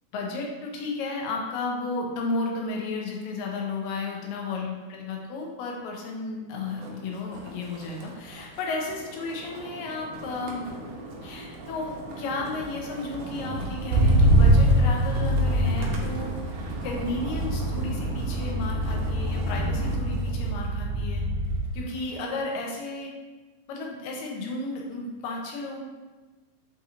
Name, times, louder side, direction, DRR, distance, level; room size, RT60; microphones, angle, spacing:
voice 1, 0.1-10.7 11.2-16.6 16.8-21.3 21.7-23.1 23.7-25.8, left 3 dB, 90° left, 0 dB, 2.4 m, -33 dB
Motor vehicle (road), 6.7-7.0 7.3-21.8 22.2-22.6, right 1 dB, 90° right, 2.3 m, -26 dB
6.6 x 2.8 x 2.4 m, 1.2 s
omnidirectional pair, 3.9 m